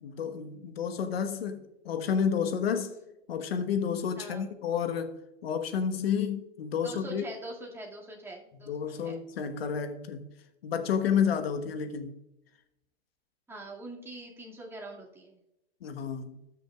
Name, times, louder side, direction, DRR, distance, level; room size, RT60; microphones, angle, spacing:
voice 1, 0.0-2.9 3.3-5.2 5.4-7.2 8.6-10.3 10.6-12.2 15.8-16.4, left 7 dB, 70° left, 1.2 m, -30 dB
voice 2, 4.2-4.5 6.8-8.7 9.0-9.2 13.5-15.4, right 2 dB, 5° right, 2.0 m, -43 dB
18.5 x 6.3 x 2.3 m
hypercardioid pair, 115°, 32 cm